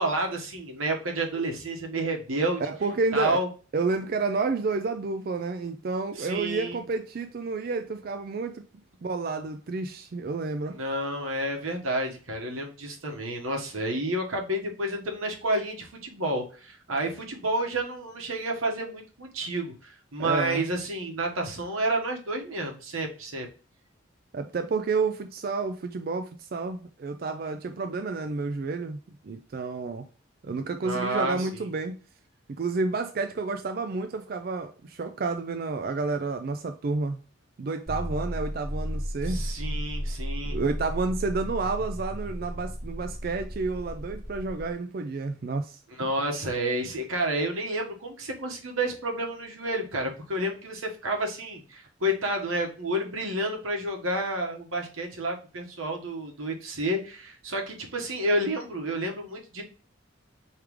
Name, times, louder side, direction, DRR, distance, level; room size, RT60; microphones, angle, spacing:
voice 1, 0.0-2.6 3.1-3.5 6.2-6.8 10.7-23.5 30.8-31.7 39.2-40.6 46.0-59.6, right 1 dB, 90° right, 1.3 m, -30 dB
voice 2, 2.6-3.4 3.7-8.6 9.0-10.8 20.2-20.6 24.3-29.0 29.2-30.1 30.4-32.0 32.5-37.2 37.6-39.4 40.5-45.8, right 3 dB, 45° right, 0.4 m, -30 dB
sound 1, 37.9-44.7, equal, 15° right, 0.8 m, -34 dB
4.7 x 3.2 x 3.5 m
head